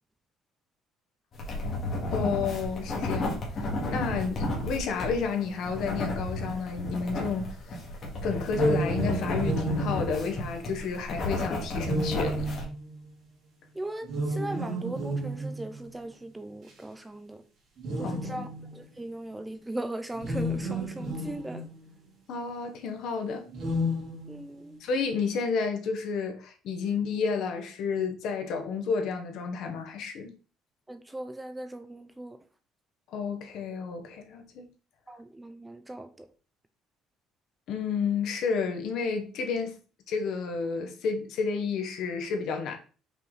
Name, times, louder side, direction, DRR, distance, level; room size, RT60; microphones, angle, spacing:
sound 1, 1.3-12.6, left 1 dB, 35° left, 2.0 m, -33 dB
voice 1, 2.1-7.5 8.2-12.5 18.0-18.5 22.3-23.5 24.8-30.4 33.1-34.7 37.7-39.8 40.1-42.8, left 5 dB, 55° left, 1.2 m, -31 dB
sound 2, 8.5-10.9 11.8-13.1 14.0-15.9 16.7-16.8 17.8-18.8 20.1-21.9 23.5-24.7, right 1 dB, 40° right, 2.7 m, -32 dB
voice 2, 13.7-17.4 18.0-21.7 24.3-24.8 30.9-32.4 35.1-36.3, right 1 dB, 10° right, 0.4 m, -39 dB
5.6 x 4.6 x 3.9 m
cardioid pair, 170°, 0 cm